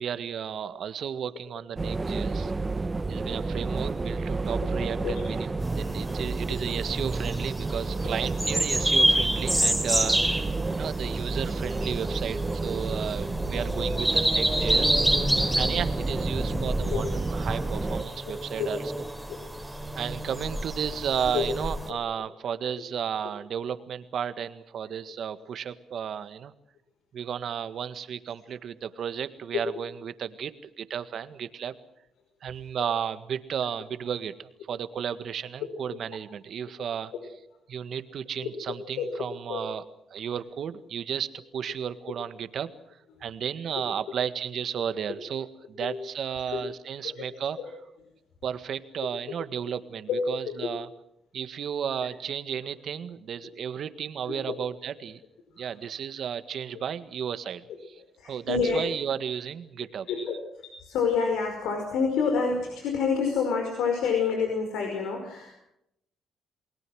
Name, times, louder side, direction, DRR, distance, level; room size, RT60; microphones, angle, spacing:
voice 1, 0.0-2.5 3.1-18.8 19.9-26.5 27.1-31.7 32.4-37.1 37.7-42.7 43.2-47.6 48.4-50.9 51.3-55.2 55.6-60.1, right 8 dB, 60° right, 12 dB, 1.7 m, -33 dB
sound 1, 1.8-18.0, right 3 dB, 25° right, 1.2 m, -31 dB
sound 2, 5.6-21.9, right 1 dB, ahead, 3.6 m, -29 dB
voice 2, 50.1-50.7 54.3-54.6 56.7-56.8 58.0-58.8 60.1-65.6, left 5 dB, 85° left, 3 dB, 5.2 m, -28 dB
28.5 x 21.0 x 6.3 m, 0.79 s
cardioid pair, 90°, 0 cm